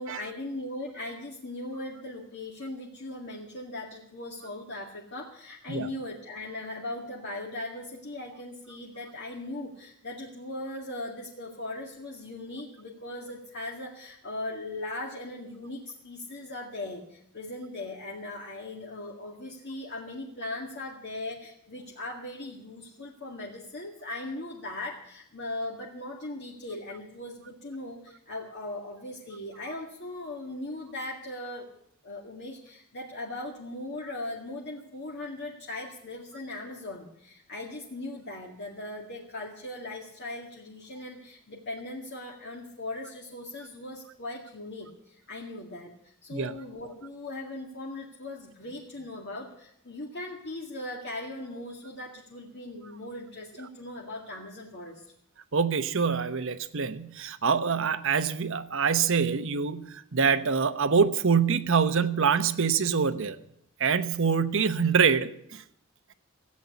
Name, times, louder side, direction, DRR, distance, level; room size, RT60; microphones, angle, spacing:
voice 1, 0.0-31.7 32.0-55.0, left 2 dB, 55° left, -2 dB, 2.1 m, -39 dB
voice 2, 55.5-63.4 63.8-65.6, right 6 dB, 65° right, 11 dB, 1.0 m, -25 dB
16.0 x 8.6 x 9.5 m, 0.73 s
head